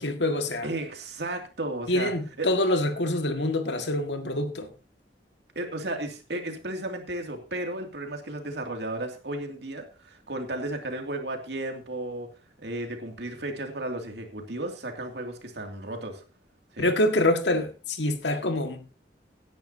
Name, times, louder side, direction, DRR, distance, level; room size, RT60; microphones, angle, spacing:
voice 1, 0.0-0.7 1.9-4.7 16.8-18.8, left 1 dB, 80° left, 1.9 m, -26 dB
voice 2, 0.6-2.1 2.4-2.5 5.5-12.3 12.6-16.2 16.7-16.9, right 1 dB, 65° right, 2.6 m, -34 dB
17.5 x 10.0 x 2.8 m
head